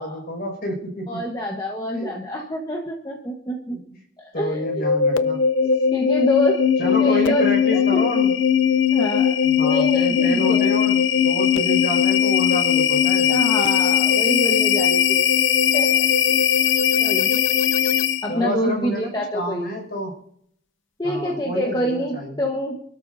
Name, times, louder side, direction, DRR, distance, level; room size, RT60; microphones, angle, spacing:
voice 1, 0.0-1.2 1.9-2.1 3.7-3.8 4.3-5.4 6.8-8.3 9.4-13.3 18.3-20.2 21.0-22.4, equal, 50° left, 2 dB, 5.8 m, -29 dB
voice 2, 1.1-3.8 4.2-4.8 5.9-6.6 7.0-7.4 7.7-8.0 8.9-9.3 9.6-10.7 13.3-15.4 15.7-16.1 17.0-17.4 17.8-17.9 18.2-19.7 21.0-22.8, left 1 dB, 20° left, 0 dB, 1.3 m, -26 dB
sound 1, 4.5-18.4, left 8 dB, 80° left, 0.7 m, -19 dB
28.0 x 13.0 x 2.7 m, 0.69 s
head